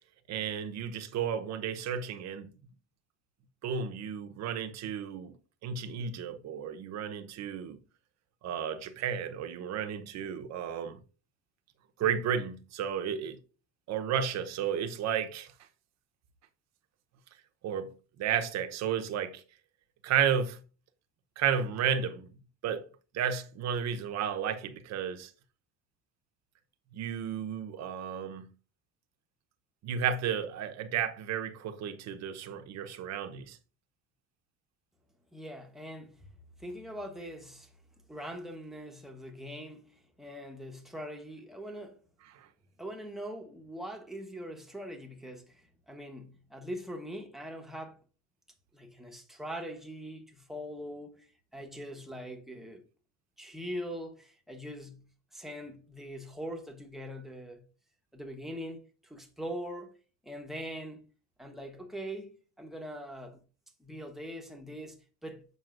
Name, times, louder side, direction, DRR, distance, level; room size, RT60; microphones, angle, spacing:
voice 1, 0.3-2.5 3.6-5.3 5.6-7.8 8.4-11.0 12.0-13.4 13.9-15.5 17.6-19.4 20.0-20.6 21.4-22.3 22.6-22.9 23.1-25.3 26.9-28.5 29.8-33.6 42.3-42.5, right 8 dB, 50° right, 0.9 m, -32 dB
voice 2, 35.3-36.3 36.6-37.7 38.1-42.0 42.8-48.0 48.7-51.3 51.5-52.9 53.4-57.6 58.1-60.0 60.2-61.1 61.4-63.4 63.8-65.4, equal, ahead, 1.0 m, -42 dB
7.5 x 5.6 x 2.5 m
cardioid pair, 145°, 33 cm